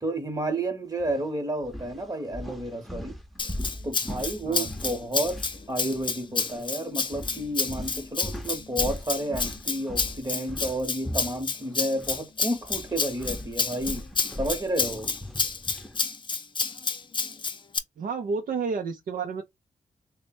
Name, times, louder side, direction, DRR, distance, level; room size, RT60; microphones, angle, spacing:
voice 1, 0.0-3.1 3.8-5.4 5.7-14.1 14.4-15.1, right 1 dB, 25° right, 1.0 m, -31 dB
sound 1, 1.0-1.2 1.6-6.1 6.4-6.6 7.1-12.2 12.5-16.0, left 1 dB, ahead, 0.7 m, -39 dB
Rattle (instrument), 3.4-17.8, left 4 dB, 35° left, 0.5 m, -30 dB
voice 2, 18.0-19.4, right 5 dB, 80° right, 0.6 m, -30 dB
3.2 x 2.2 x 4.1 m
cardioid pair, 75°, 14 cm